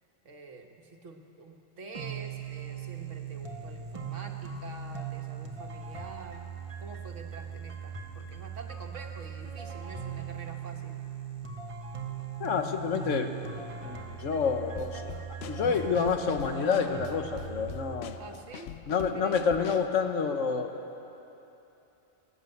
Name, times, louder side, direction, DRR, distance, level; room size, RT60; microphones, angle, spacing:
voice 1, 0.2-6.5 6.8-11.0 18.2-18.7 19.1-19.4, right 3 dB, 75° right, 3 dB, 1.6 m, -47 dB
sound 1, 1.9-18.0, right 6 dB, 30° right, 1.1 m, -39 dB
voice 2, 12.4-13.3 13.8-15.2 15.5-18.2 18.9-20.7, left 5 dB, 85° left, 6 dB, 1.4 m, -28 dB
Drum kit / Snare drum, 14.8-20.0, left 9 dB, 65° left, 0.8 m, -44 dB
19.0 x 9.6 x 8.0 m, 3.0 s
omnidirectional pair, 1.3 m